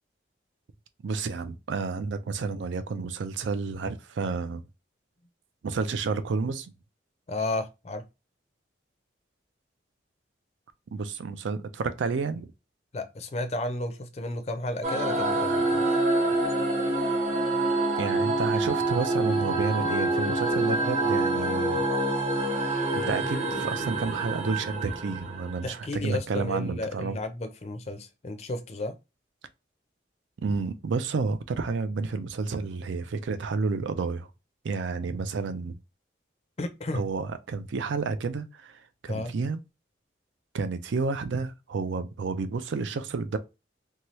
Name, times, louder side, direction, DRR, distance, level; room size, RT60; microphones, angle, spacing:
voice 1, 1.0-4.6 5.6-6.7 10.9-12.5 18.0-21.8 22.9-27.2 30.4-34.3 34.6-35.8 36.9-39.6 40.5-43.4, right 4 dB, 80° right, 0.4 m, -30 dB
voice 2, 7.3-8.0 12.9-16.0 25.6-29.0 36.6-37.1 39.1-39.3, left 2 dB, 35° left, 0.4 m, -33 dB
sound 1, 14.8-25.7, right 2 dB, 35° right, 0.9 m, -26 dB
2.8 x 2.3 x 3.0 m
head